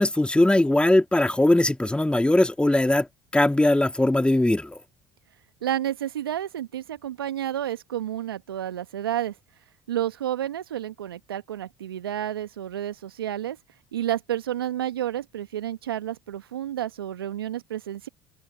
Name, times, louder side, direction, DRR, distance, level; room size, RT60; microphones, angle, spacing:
voice 1, 0.0-3.1 3.3-4.8, left 1 dB, 10° left, 1.9 m, -20 dB
voice 2, 5.6-9.3 9.9-13.6 13.9-18.1, right 11 dB, 85° right, 1.6 m, -30 dB
open air
hypercardioid pair, 60°, 12 cm